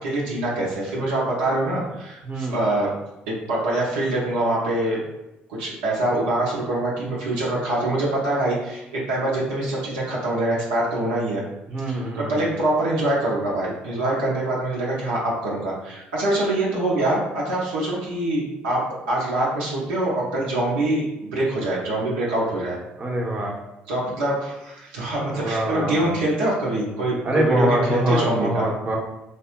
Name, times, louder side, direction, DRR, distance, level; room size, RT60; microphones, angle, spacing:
voice 1, 0.0-2.9 3.3-5.0 5.5-11.4 11.8-22.8 23.9-28.6, right 1 dB, 85° right, -5 dB, 0.7 m, -24 dB
voice 2, 2.2-2.6 11.7-12.5 23.0-23.5 25.3-26.1 27.2-29.0, right 1 dB, 30° right, -1 dB, 0.9 m, -24 dB
3.2 x 2.1 x 2.9 m, 0.94 s
hypercardioid pair, 55°, 5 cm